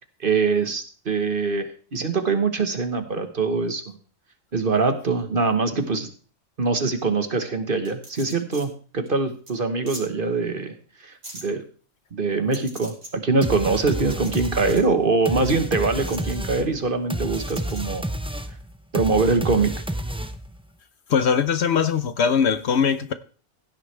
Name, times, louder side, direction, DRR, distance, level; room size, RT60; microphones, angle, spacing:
voice 1, 0.2-3.8 4.5-6.1 6.6-10.7 11.0-11.6 12.1-18.0 18.9-19.7, right 4 dB, 45° right, 1.4 m, -23 dB
sound 1, 7.8-8.6 9.1-9.2 9.5-9.6 9.9-10.0 11.2-11.4 12.5-13.1 14.0-14.9 16.0-16.4 17.3-17.8, right 1 dB, 60° right, 3.6 m, -40 dB
sound 2, 13.4-20.6, right 1 dB, 5° right, 0.5 m, -30 dB
voice 2, 21.1-23.1, left 6 dB, 60° left, 0.9 m, -21 dB
16.0 x 9.6 x 3.3 m
omnidirectional pair, 1.3 m